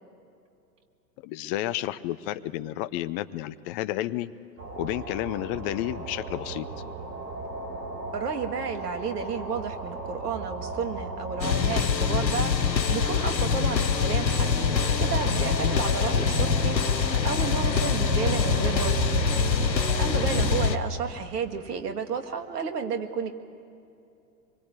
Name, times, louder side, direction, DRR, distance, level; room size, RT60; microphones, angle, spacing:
voice 1, 1.2-4.3 4.8-6.7 20.1-20.2, left 14 dB, 35° left, 15 dB, 0.8 m, -31 dB
sound 1, 4.6-20.7, right 4 dB, 40° right, 5.9 m, -34 dB
voice 2, 8.1-14.7 15.0-19.1 19.5-23.3, right 6 dB, 65° right, 7 dB, 2.3 m, -32 dB
sound 2, 11.4-20.8, left 6 dB, 80° left, 1.1 m, -25 dB
25.0 x 23.5 x 8.4 m, 2.6 s
figure-of-eight pair, 95°, 50 cm